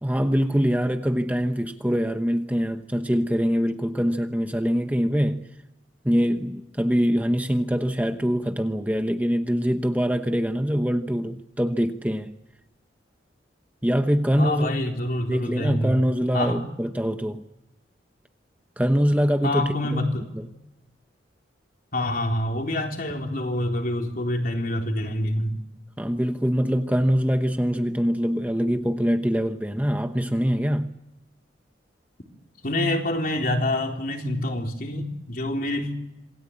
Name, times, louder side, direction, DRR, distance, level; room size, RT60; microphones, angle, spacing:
voice 1, 0.0-5.5 6.0-12.4 13.8-14.7 15.3-17.4 18.8-19.7 20.3-20.5 26.0-30.9, equal, 10° right, 0.9 m, -23 dB
voice 2, 14.4-16.0 16.3-16.6 19.4-20.3 21.9-25.6 32.6-35.9, left 1 dB, 50° left, 3.8 m, -26 dB
27.0 x 19.5 x 8.6 m
head